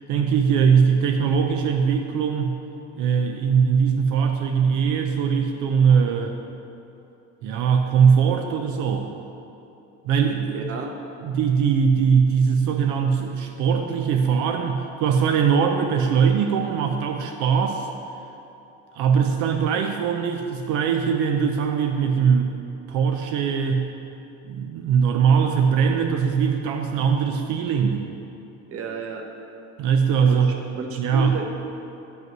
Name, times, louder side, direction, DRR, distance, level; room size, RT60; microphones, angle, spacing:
voice 1, 0.1-2.6 3.0-6.4 7.4-9.1 10.0-10.7 11.2-17.9 18.9-22.6 22.9-23.9 24.4-28.1 29.8-30.6 31.0-31.4, right 6 dB, 85° right, 4 dB, 0.7 m, -21 dB
voice 2, 10.5-10.9 28.7-29.2 30.3-30.4 30.7-31.4, right 4 dB, 50° right, 3 dB, 1.1 m, -31 dB
9.4 x 5.5 x 6.0 m, 2.8 s
cardioid pair, 140°, 30 cm